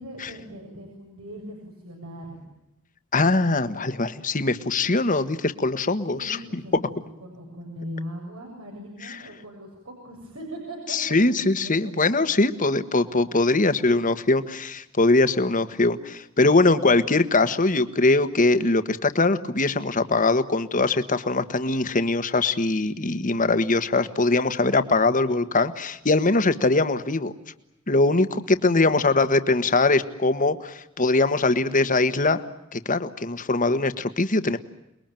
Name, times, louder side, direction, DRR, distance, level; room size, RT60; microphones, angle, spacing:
voice 1, 0.0-2.4 6.1-11.0 11.6-11.9, equal, 85° right, 0 dB, 7.4 m, -39 dB
voice 2, 3.1-6.4 10.9-27.3 27.9-32.4 32.7-34.6, left 3 dB, 40° left, 10 dB, 1.5 m, -22 dB
29.0 x 21.5 x 9.1 m, 0.88 s
head